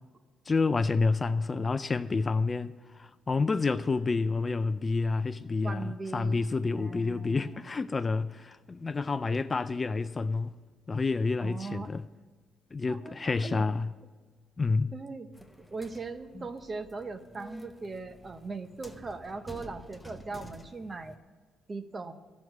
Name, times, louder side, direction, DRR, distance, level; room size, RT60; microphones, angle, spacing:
voice 1, 0.5-10.5 10.9-12.0 12.7-13.9 14.6-14.9 16.4-16.5, left 4 dB, 30° left, 0.3 m, -29 dB
voice 2, 5.6-6.4 6.7-7.7 11.4-11.9 12.9-13.7 14.9-15.3 15.7-21.2 21.7-22.1, right 3 dB, 35° right, 0.9 m, -39 dB
sound 1, 15.3-21.1, equal, ahead, 0.9 m, -50 dB
12.5 x 6.1 x 7.9 m
cardioid pair, 90°, 0 cm